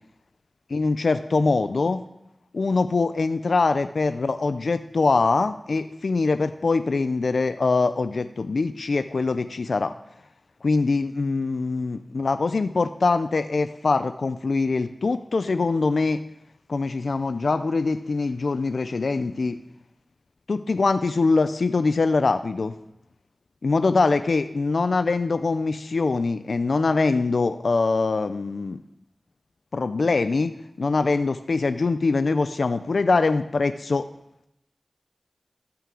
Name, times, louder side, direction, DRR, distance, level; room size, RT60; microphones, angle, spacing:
voice 1, 0.7-2.0 2.5-9.9 10.6-16.2 16.7-19.6 20.5-22.7 23.6-28.8 29.7-34.1, left 3 dB, 85° left, 12 dB, 0.4 m, -23 dB
13.5 x 5.7 x 3.7 m, 0.82 s
wide cardioid pair, 50°, 0 cm